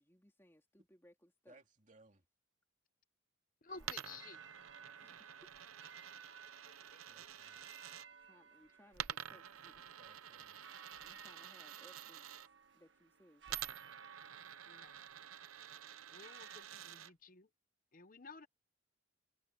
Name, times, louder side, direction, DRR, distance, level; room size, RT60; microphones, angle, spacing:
voice 1, 0.0-1.6 3.8-4.2 5.0-5.6 8.2-9.9 11.0-13.8, equal, 10° left, 3.4 m, -66 dB
voice 2, 1.5-2.2 7.0-7.7 10.0-10.6, right 2 dB, 35° right, 2.7 m, -65 dB
voice 3, 3.6-4.4 6.2-6.3 6.9-7.3 14.7-15.0 16.1-17.5 17.9-18.5, left 4 dB, 40° left, 0.8 m, -54 dB
sound 1, 3.7-16.6, right 6 dB, 55° right, 1.6 m, -59 dB
Coin (dropping), 3.8-8.1 8.9-12.5 13.5-17.1, right 10 dB, 90° right, 0.8 m, -49 dB
head